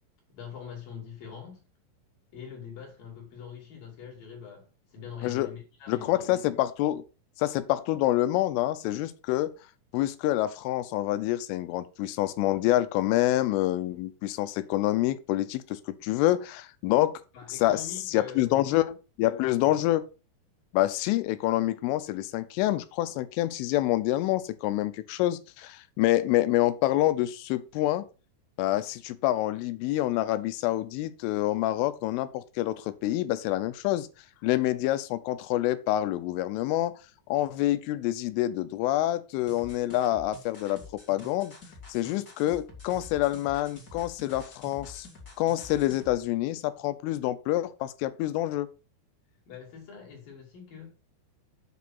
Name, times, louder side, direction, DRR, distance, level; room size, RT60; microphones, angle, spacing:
voice 1, 0.3-1.6 2.3-6.3 17.3-18.7 19.6-19.8 49.5-50.9, left 7 dB, 50° left, 3.6 m, -43 dB
voice 2, 5.9-7.0 7.4-9.5 9.9-17.2 17.5-20.1 20.7-28.1 28.6-34.1 34.4-36.9 37.3-41.5 41.9-45.1 45.4-48.7, left 15 dB, 85° left, 3.3 m, -27 dB
sound 1, 39.5-46.2, left 3 dB, 30° left, 1.9 m, -48 dB
8.4 x 6.0 x 5.5 m
omnidirectional pair, 5.7 m